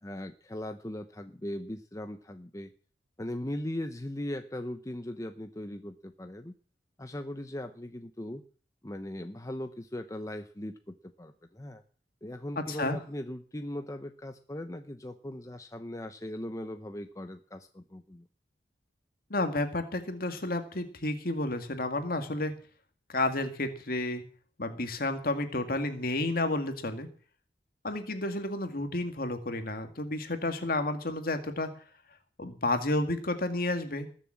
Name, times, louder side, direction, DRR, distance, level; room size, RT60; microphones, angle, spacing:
voice 1, 0.0-2.7 3.2-6.5 7.0-8.4 8.8-11.8 12.2-18.2, left 1 dB, 20° left, 7 dB, 0.8 m, -39 dB
voice 2, 12.6-13.0 19.3-22.5 23.1-24.2 24.6-27.1 27.8-31.7 32.4-34.1, left 2 dB, 55° left, 7 dB, 2.0 m, -31 dB
20.0 x 7.2 x 7.5 m, 0.42 s
head